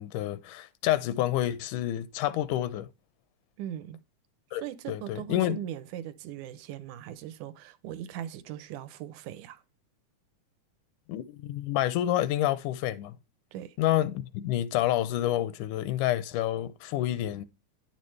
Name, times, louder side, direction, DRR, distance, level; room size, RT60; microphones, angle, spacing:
voice 1, 0.0-2.9 4.5-4.6 4.9-5.6 11.1-13.2 13.8-17.5, left 13 dB, 90° left, 2.2 m, -28 dB
voice 2, 3.6-4.0 4.6-9.6 13.5-13.8, right 11 dB, 80° right, 2.2 m, -39 dB
10.0 x 6.8 x 3.2 m
omnidirectional pair, 3.6 m